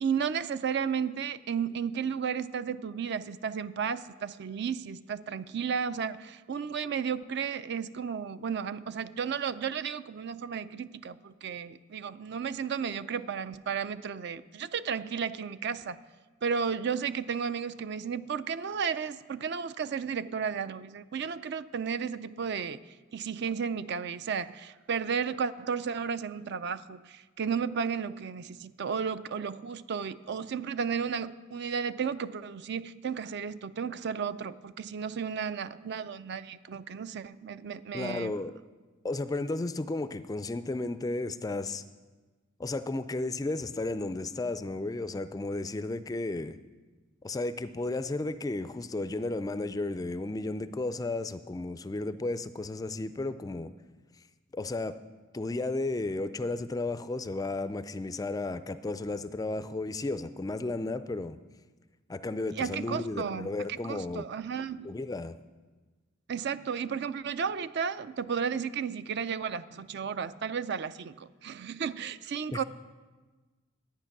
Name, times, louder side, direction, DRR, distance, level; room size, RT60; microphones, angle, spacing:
voice 1, 0.0-16.0 16.4-22.8 23.1-38.4 62.6-64.9 66.3-72.6, right 6 dB, 55° right, 14 dB, 0.4 m, -33 dB
voice 2, 37.9-38.5 39.0-41.8 42.6-46.6 47.2-53.7 54.5-55.0 55.3-61.4 62.1-64.2 64.8-65.3 72.5-72.6, left 2 dB, 20° left, 12 dB, 0.3 m, -33 dB
12.5 x 9.0 x 5.9 m, 1.3 s
head